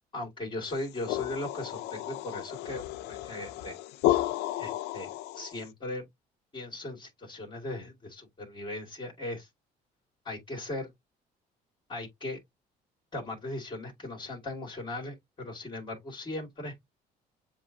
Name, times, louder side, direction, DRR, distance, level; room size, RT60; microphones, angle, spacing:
voice 1, 0.1-3.8 4.6-6.1 6.5-9.5 10.2-10.9 11.9-12.4 13.1-16.7, left 2 dB, 25° left, 2.1 m, -38 dB
sound 1, 0.7-5.7, left 14 dB, 85° left, 0.5 m, -32 dB
7.2 x 2.6 x 2.7 m
cardioid pair, 110°, 17 cm